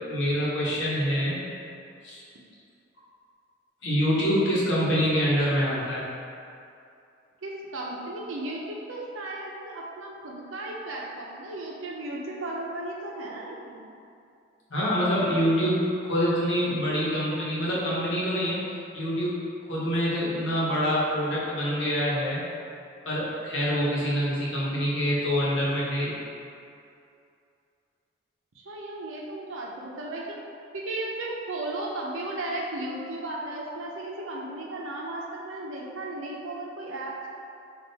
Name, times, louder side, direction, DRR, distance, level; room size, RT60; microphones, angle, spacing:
voice 1, 0.0-1.4 2.0-2.2 3.8-6.0 14.7-18.6 18.9-19.4 19.7-22.4 23.0-26.1, equal, 75° left, -7 dB, 1.0 m, -25 dB
voice 2, 7.4-13.8 28.5-30.4 30.7-37.3, right 2 dB, 85° right, -2 dB, 0.6 m, -35 dB
3.7 x 2.5 x 4.0 m, 2.5 s
head